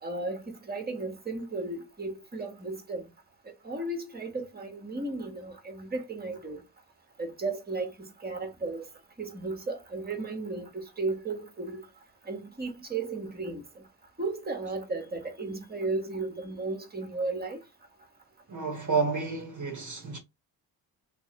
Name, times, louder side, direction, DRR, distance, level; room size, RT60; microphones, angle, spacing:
voice 1, 0.0-3.0 3.6-6.6 7.2-8.9 9.2-11.9 12.2-13.8 14.2-17.6, right 3 dB, 20° right, 1.4 m, -35 dB
voice 2, 18.5-20.2, right 4 dB, 35° right, 1.2 m, -30 dB
3.5 x 3.0 x 3.0 m
supercardioid pair, 50°, 49 cm